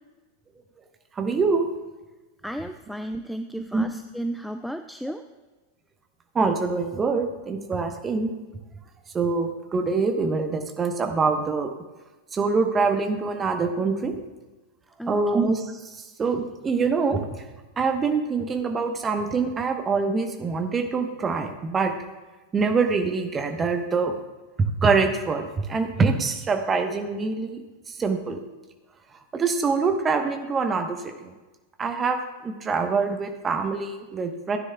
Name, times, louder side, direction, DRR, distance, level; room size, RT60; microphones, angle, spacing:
voice 1, 1.2-1.7 3.7-3.9 6.3-8.3 9.1-11.7 12.3-14.2 15.1-17.3 17.8-21.9 22.5-24.1 24.8-27.6 28.0-28.4 29.3-31.3 31.8-32.2 32.4-34.6, right 4 dB, 20° right, 5 dB, 1.1 m, -24 dB
voice 2, 2.4-5.2 15.0-15.2, right 1 dB, ahead, 8 dB, 0.4 m, -33 dB
15.5 x 9.7 x 2.4 m, 1.2 s
figure-of-eight pair, 90°, 0 cm